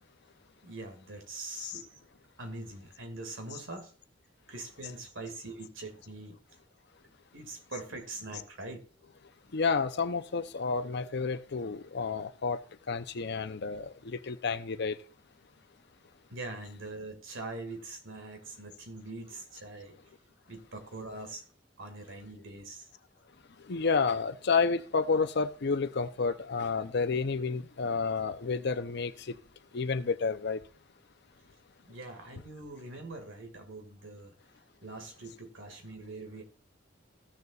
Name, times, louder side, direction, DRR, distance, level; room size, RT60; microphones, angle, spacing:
voice 1, 0.6-1.9 2.4-3.9 4.5-6.4 7.3-8.8 16.3-20.0 20.5-21.4 21.8-22.9 31.8-34.4 34.8-36.4, right 2 dB, 90° right, 2.1 m, -43 dB
voice 2, 9.5-12.6 12.9-14.9 23.7-29.4 29.7-30.6, left 4 dB, 60° left, 0.7 m, -30 dB
15.5 x 6.7 x 2.4 m
head